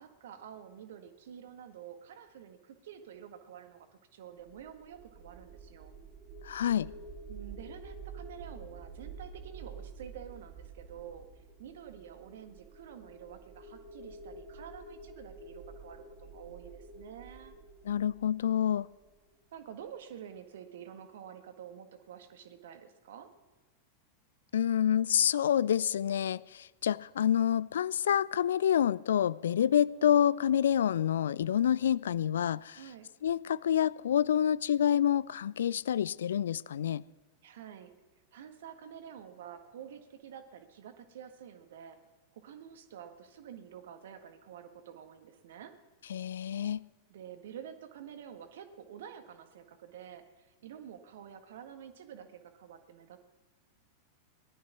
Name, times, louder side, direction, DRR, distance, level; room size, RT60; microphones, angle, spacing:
voice 1, 0.0-5.9 7.3-17.5 19.5-23.3 32.7-33.1 37.4-37.9 38.3-42.0 42.3-45.7 47.1-53.2, right 9 dB, 60° right, 8 dB, 1.6 m, -49 dB
sound 1, 4.4-19.5, right 4 dB, 30° right, 2.4 m, -49 dB
voice 2, 6.4-6.9 17.8-18.9 24.5-32.8 33.2-37.0 46.1-46.8, left 9 dB, 65° left, 22 dB, 0.4 m, -28 dB
18.5 x 12.0 x 6.0 m, 1.3 s
figure-of-eight pair, 90°, 0 cm